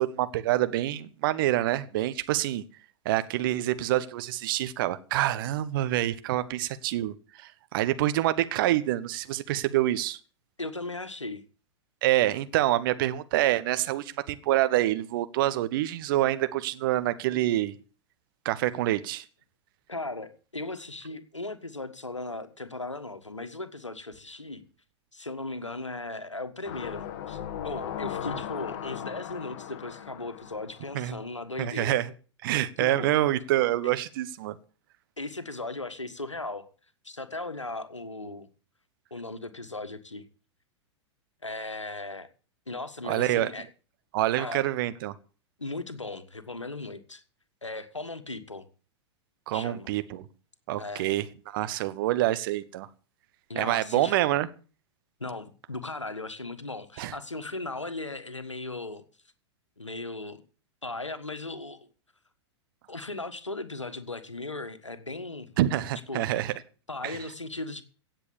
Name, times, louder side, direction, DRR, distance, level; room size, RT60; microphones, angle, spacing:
voice 1, 0.0-2.6 3.0-10.2 12.0-17.7 18.4-19.2 30.9-31.2 31.6-32.1 32.4-34.6 43.0-43.5 44.1-45.1 49.5-50.2 50.7-52.9 53.5-54.5 57.0-57.1 65.6-66.5 67.0-67.2, right 14 dB, 45° right, 1.2 m, -26 dB
voice 2, 10.6-11.4 19.9-24.6 25.1-31.9 32.8-33.1 33.8-33.9 35.2-36.7 37.0-38.5 39.1-40.2 41.4-42.3 42.7-43.7 44.4-44.6 45.6-47.2 47.6-48.7 49.5-49.9 50.8-51.1 53.5-54.2 55.2-59.0 59.8-60.4 60.8-61.9 62.9-65.5 66.1-66.3 66.9-67.8, left 2 dB, 85° left, 1.6 m, -37 dB
sound 1, 26.6-31.5 31.9-32.0, left 10 dB, 45° left, 1.4 m, -38 dB
17.0 x 7.6 x 7.2 m
figure-of-eight pair, 100°, 15 cm